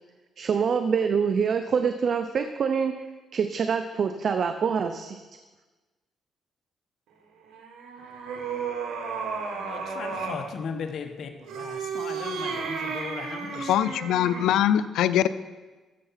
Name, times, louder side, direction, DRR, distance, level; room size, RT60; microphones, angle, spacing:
voice 1, 0.4-2.9 3.3-5.2, right 6 dB, 50° right, 8 dB, 0.6 m, -25 dB
sound 1, 7.5-10.5 11.4-14.6, right 5 dB, 85° right, 1.9 m, -33 dB
voice 2, 9.5-13.8, left 6 dB, 60° left, 6 dB, 1.1 m, -37 dB
voice 3, 13.7-15.3, left 11 dB, 85° left, 15 dB, 0.5 m, -22 dB
14.0 x 6.9 x 5.7 m, 1.3 s
cardioid pair, 90°, 0 cm